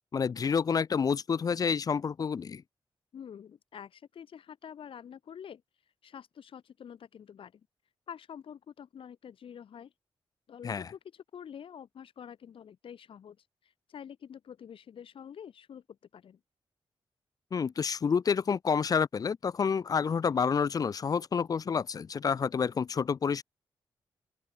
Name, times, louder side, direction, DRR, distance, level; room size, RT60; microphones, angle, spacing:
voice 1, 0.1-2.6 10.6-10.9 17.5-23.4, left 6 dB, 40° left, 0.4 m, -29 dB
voice 2, 3.1-5.6 6.0-7.6 8.1-9.9 10.5-13.4 13.6-15.8 16.1-16.4, left 8 dB, 70° left, 1.9 m, -47 dB
open air
cardioid pair, 105°, 9 cm